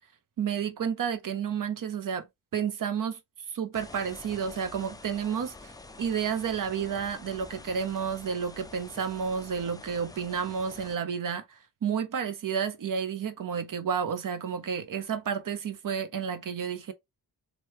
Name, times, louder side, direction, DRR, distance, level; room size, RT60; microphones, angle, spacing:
voice 1, 0.4-2.3 2.5-3.2 3.5-5.7 6.0-16.9, right 7 dB, 50° right, 0.7 m, -31 dB
sound 1, 3.7-11.0, left 3 dB, 10° left, 0.3 m, -47 dB
3.0 x 2.1 x 3.0 m
cardioid pair, 60°, 42 cm